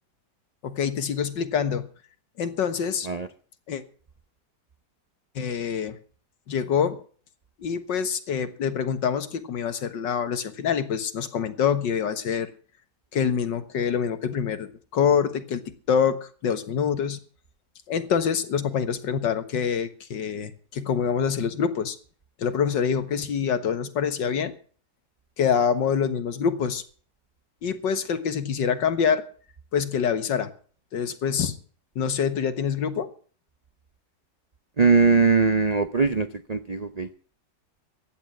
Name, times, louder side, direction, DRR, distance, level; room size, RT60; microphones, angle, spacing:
voice 1, 0.6-1.9 2.4-3.1 3.7-3.8 5.4-6.0 6.5-7.0 7.6-12.5 13.1-17.2 17.9-22.0 22.4-24.5 25.4-26.8 27.6-29.2 29.7-30.5 30.9-31.6 32.0-33.1, left 7 dB, 80° left, 11 dB, 2.1 m, -25 dB
voice 2, 34.8-37.1, right 4 dB, 55° right, 11 dB, 0.4 m, -21 dB
15.0 x 10.5 x 6.1 m, 0.43 s
omnidirectional pair, 1.9 m